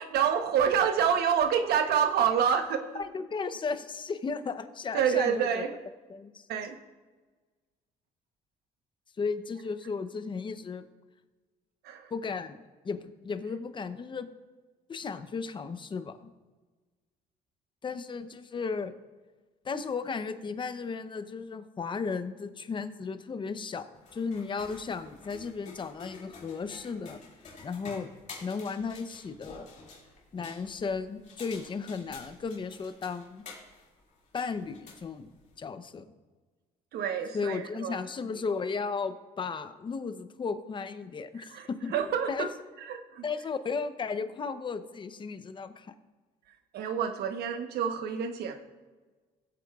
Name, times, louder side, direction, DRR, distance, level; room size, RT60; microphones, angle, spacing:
voice 1, 0.0-2.8 4.9-5.7 6.5-6.8 11.8-12.1 36.9-38.0 41.5-42.5 42.9-43.2 46.7-48.5, right 8 dB, 70° right, 7 dB, 1.0 m, -27 dB
voice 2, 2.9-5.6 6.1-6.5 9.2-10.9 12.1-14.3 14.9-16.2 17.8-18.9 19.6-27.2 27.6-28.1 28.4-29.7 30.3-33.4 34.3-35.3 35.6-36.0 37.3-41.9 42.3-42.5 43.2-45.9, left 5 dB, 30° left, 11 dB, 0.7 m, -35 dB
sound 1, 23.9-35.6, left 4 dB, 45° left, 2.4 m, -50 dB
18.0 x 8.0 x 2.4 m, 1.3 s
cardioid pair, 110°, 17 cm